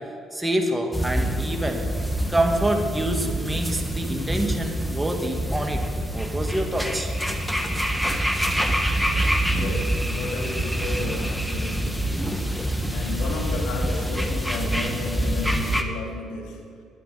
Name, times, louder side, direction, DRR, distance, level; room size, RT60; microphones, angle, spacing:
voice 1, 0.3-1.9 2.3-5.9 6.1-7.1, right 1 dB, 10° right, 2 dB, 2.3 m, -26 dB
sound 1, 0.9-15.8, equal, 5° left, 1.5 m, -26 dB
voice 2, 9.5-16.8, left 3 dB, 65° left, 1 dB, 3.1 m, -33 dB
22.0 x 9.9 x 4.4 m, 2.4 s
hypercardioid pair, 55°, 0 cm